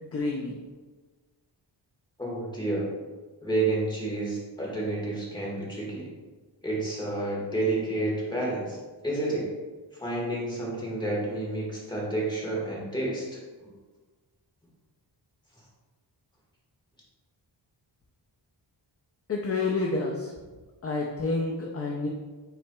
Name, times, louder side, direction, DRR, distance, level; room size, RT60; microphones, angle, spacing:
voice 1, 0.0-0.6 19.3-20.3 20.8-22.1, left 3 dB, 35° left, -1 dB, 0.4 m, -29 dB
voice 2, 2.2-2.9 3.4-6.1 6.6-8.8 9.0-9.5 9.9-13.7, right 2 dB, 10° left, -5 dB, 1.3 m, -30 dB
5.7 x 4.1 x 2.2 m, 1.3 s
wide cardioid pair, 155°, 44 cm